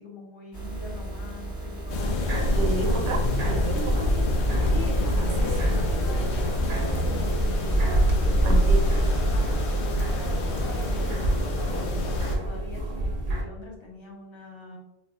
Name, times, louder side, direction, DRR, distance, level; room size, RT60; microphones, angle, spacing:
voice 1, 0.0-2.2 3.7-9.5 9.8-14.8, left 2 dB, 30° left, -2 dB, 0.6 m, -42 dB
sound 1, 0.5-11.1, right 1 dB, 65° left, 1.7 m, -34 dB
sound 2, 1.9-12.4, left 1 dB, 80° left, 0.8 m, -27 dB
sound 3, 2.2-13.4, right 1 dB, 55° right, 0.7 m, -27 dB
voice 2, 2.5-4.1 5.2-5.5 8.4-8.9, right 2 dB, 90° right, 3 dB, 0.9 m, -31 dB
3.7 x 2.1 x 2.4 m, 0.93 s
omnidirectional pair, 1.1 m